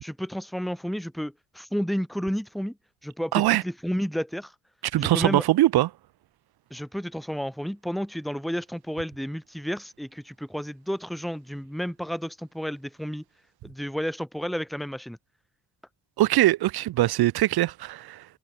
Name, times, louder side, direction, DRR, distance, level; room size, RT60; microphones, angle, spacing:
voice 1, 0.0-2.8 3.0-4.5 5.0-5.4 6.7-13.2 13.6-15.2, equal, ahead, 3.6 m, -31 dB
voice 2, 3.3-3.6 4.9-5.9 16.2-18.2, right 15 dB, 65° right, 1.7 m, -22 dB
hypercardioid pair, 60°, 41 cm